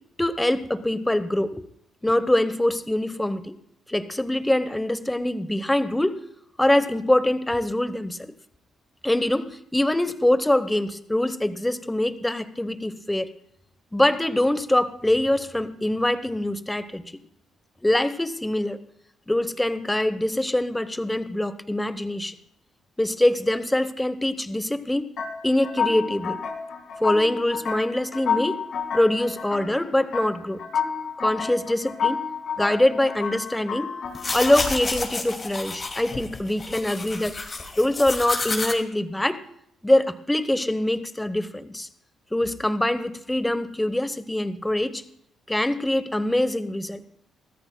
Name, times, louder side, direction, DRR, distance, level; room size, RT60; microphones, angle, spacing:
voice 1, 0.2-1.6 2.0-3.5 3.9-6.2 6.6-8.3 9.0-13.3 13.9-17.0 17.8-18.8 19.3-22.3 23.0-25.1 25.4-26.4 27.0-28.6 28.9-30.6 31.2-32.2 32.6-33.9 34.3-37.4 37.8-39.4 39.8-41.9 42.3-45.0 45.5-47.0, left 1 dB, 10° left, 12 dB, 0.9 m, -24 dB
sound 1, 25.2-35.1, left 6 dB, 65° left, 2.0 m, -31 dB
sound 2, 34.1-38.7, left 3 dB, 30° left, 2.3 m, -30 dB
23.5 x 14.0 x 2.2 m, 0.74 s
cardioid pair, 90°, 0 cm